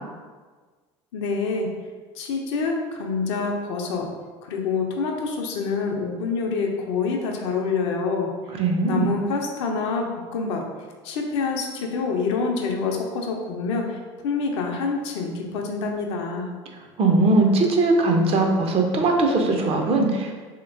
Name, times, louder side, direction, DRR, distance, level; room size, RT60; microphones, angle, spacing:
voice 1, 1.1-1.7 2.2-4.1 4.4-8.3 8.9-10.6 11.0-16.5, left 4 dB, 70° left, 1 dB, 0.5 m, -26 dB
voice 2, 8.5-9.1 17.0-20.3, right 2 dB, 40° right, 2 dB, 0.5 m, -20 dB
3.1 x 2.8 x 2.5 m, 1.4 s
hypercardioid pair, 70°, 15 cm